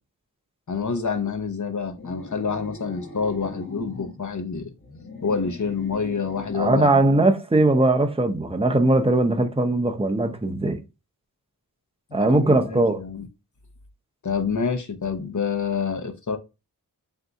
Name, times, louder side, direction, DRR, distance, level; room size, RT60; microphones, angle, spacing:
voice 1, 0.7-4.7 5.2-7.3 12.1-13.2 14.2-16.4, left 5 dB, 55° left, 0.8 m, -27 dB
sound 1, 1.9-4.2 4.8-7.0, left 3 dB, 40° left, 1.4 m, -40 dB
voice 2, 6.5-10.8 12.1-13.0, right 2 dB, 15° right, 0.6 m, -20 dB
3.9 x 2.7 x 3.4 m
wide cardioid pair, 75°, 36 cm